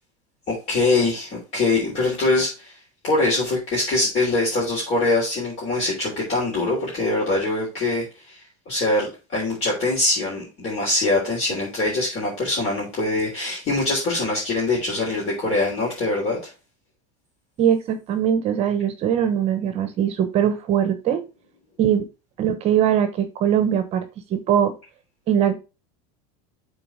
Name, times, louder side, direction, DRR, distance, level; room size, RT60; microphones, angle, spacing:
voice 1, 0.5-2.8 3.0-9.1 9.3-16.4, left 2 dB, 35° left, -5 dB, 3.5 m, -23 dB
voice 2, 17.6-21.2 21.8-22.1 22.4-24.0 24.3-24.7 25.3-25.5, right 9 dB, 35° right, 9 dB, 1.1 m, -21 dB
7.7 x 4.1 x 4.9 m, 0.30 s
supercardioid pair, 155°, 19 cm